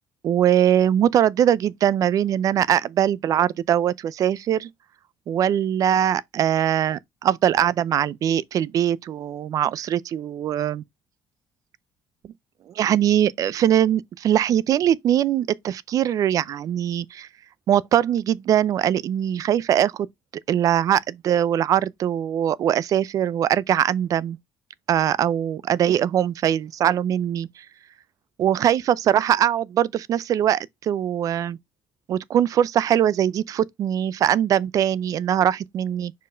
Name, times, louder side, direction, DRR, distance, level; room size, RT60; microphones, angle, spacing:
voice 1, 0.2-4.7 5.3-10.8 12.8-17.3 17.7-20.1 20.5-24.4 24.9-27.6 28.4-31.6 32.1-36.1, right 10 dB, 50° right, 0.5 m, -21 dB
5.1 x 4.6 x 4.9 m
cardioid pair, 135°, 7 cm